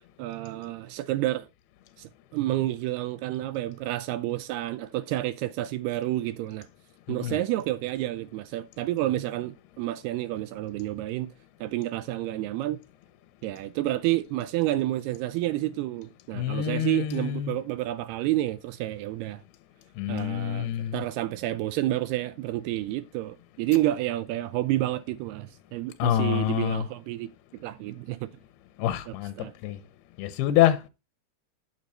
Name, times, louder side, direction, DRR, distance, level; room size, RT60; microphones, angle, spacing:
voice 1, 0.2-1.5 2.0-6.7 7.1-11.3 11.6-12.8 13.4-19.4 20.1-28.3 29.1-29.5, right 15 dB, 80° right, 2.5 m, -30 dB
voice 2, 16.3-17.6 20.0-21.0 26.0-26.9 28.8-29.8 30.2-30.9, left 12 dB, 75° left, 2.6 m, -26 dB
9.7 x 7.1 x 4.3 m
omnidirectional pair, 4.8 m